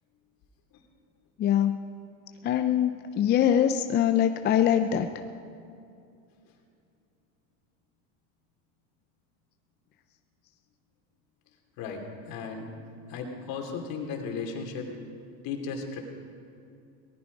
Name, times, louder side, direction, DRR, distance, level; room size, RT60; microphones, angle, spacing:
voice 1, 1.4-1.8 2.4-5.1, left 10 dB, 25° left, 8 dB, 0.4 m, -23 dB
voice 2, 11.8-12.7 13.1-14.9 15.4-16.0, left 5 dB, 55° left, 2 dB, 2.8 m, -35 dB
19.0 x 13.0 x 5.2 m, 2.5 s
supercardioid pair, 130°, 42 cm